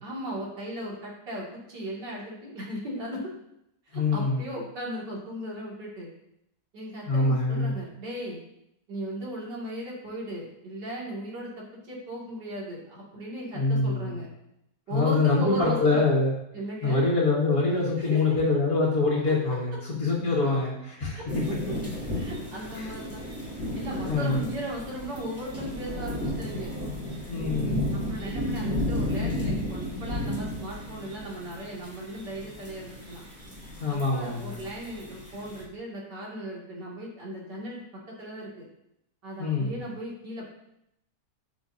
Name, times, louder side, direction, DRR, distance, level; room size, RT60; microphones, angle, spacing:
voice 1, 0.0-3.2 3.9-6.1 6.7-8.4 8.9-11.5 11.9-14.3 14.9-16.0 16.5-17.0 18.0-18.2 19.3-19.4 21.1-21.2 21.7-21.8 22.1-23.3 23.7-26.7 27.9-33.3 33.9-37.8 38.1-38.7 39.2-40.5, right 1 dB, 90° right, -5 dB, 3.0 m, -37 dB
voice 2, 3.9-4.4 7.1-7.7 13.5-14.1 14.9-16.3 16.8-19.7 20.0-21.4 22.8-22.9 24.1-24.4 27.3-27.8 33.8-34.6 39.4-39.8, left 3 dB, 60° left, -7 dB, 2.1 m, -24 dB
sound 1, 21.3-35.6, left 1 dB, 10° right, 2.3 m, -33 dB
10.5 x 6.4 x 2.7 m, 0.81 s
omnidirectional pair, 1.8 m